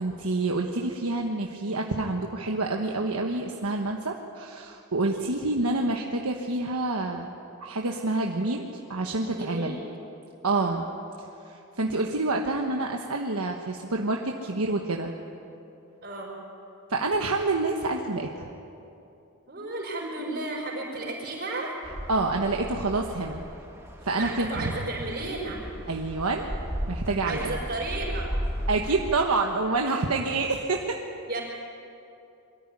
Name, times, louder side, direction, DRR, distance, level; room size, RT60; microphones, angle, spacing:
voice 1, 0.0-7.3 7.6-9.7 10.4-10.9 11.5-15.1 16.9-18.5 22.1-23.4 24.0-24.7 25.9-27.5 28.7-31.0, right 2 dB, 85° right, 1 dB, 1.2 m, -27 dB
voice 2, 9.3-9.8 10.5-10.7 16.0-16.3 19.5-21.7 24.1-25.6 27.2-28.3 31.3-31.4, right 2 dB, 45° right, -3 dB, 5.2 m, -33 dB
sound 1, 21.8-29.1, equal, 10° right, 1.8 m, -35 dB
23.0 x 14.0 x 9.8 m, 2.8 s
head